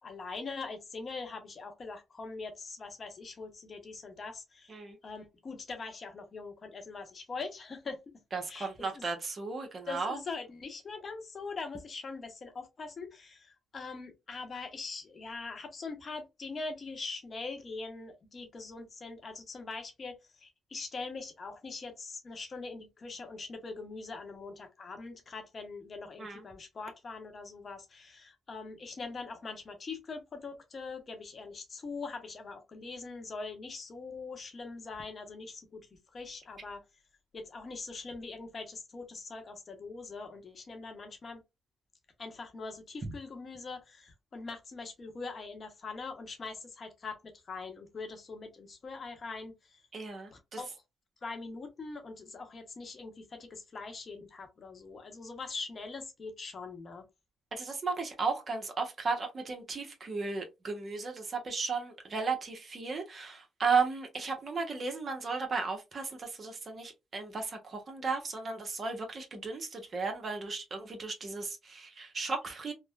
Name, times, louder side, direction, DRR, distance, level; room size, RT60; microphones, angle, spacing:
voice 1, 0.0-4.8 5.0-8.1 8.5-8.7 8.9-9.1 9.9-35.8 36.1-36.8 37.3-41.4 42.2-49.8 50.3-50.8 51.2-57.0, left 4 dB, 40° left, 0.9 m, -42 dB
voice 2, 8.3-10.2 26.2-26.4 49.9-50.6 57.5-72.7, right 4 dB, 40° right, 0.9 m, -35 dB
3.3 x 2.1 x 2.3 m
cardioid pair, 90°, 0 cm